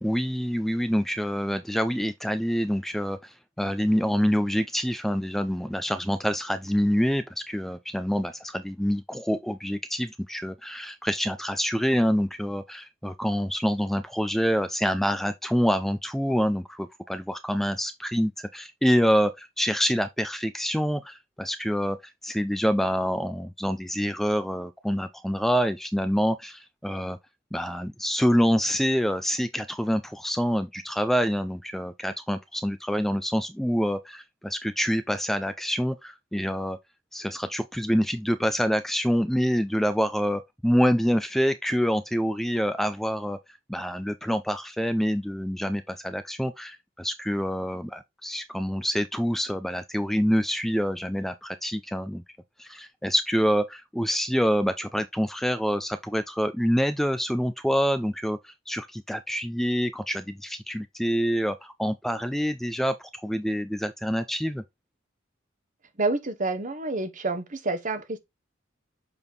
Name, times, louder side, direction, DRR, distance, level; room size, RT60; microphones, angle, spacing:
voice 1, 0.0-22.0 22.2-27.2 27.5-36.8 37.1-43.4 43.7-52.2 52.6-64.6, equal, ahead, 0.3 m, -26 dB
voice 2, 66.0-68.2, right 3 dB, 40° right, 1.1 m, -28 dB
6.9 x 3.6 x 3.9 m
head